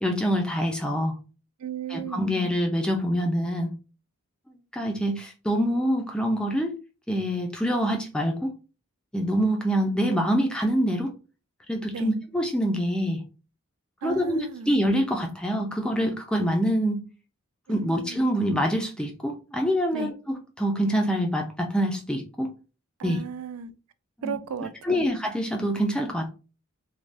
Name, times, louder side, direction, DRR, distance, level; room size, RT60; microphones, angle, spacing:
voice 1, 0.0-1.2 1.9-3.7 4.7-6.8 7.1-8.5 9.1-11.1 11.7-13.2 14.0-17.0 17.7-22.5 23.0-23.2 24.2-24.4 24.8-26.3, equal, 5° left, 0.3 m, -25 dB
voice 2, 1.6-2.4 11.9-12.1 14.0-14.8 17.7-18.2 19.9-20.1 23.0-23.7 24.2-25.0, right 7 dB, 85° right, 0.3 m, -35 dB
3.3 x 2.2 x 2.5 m
head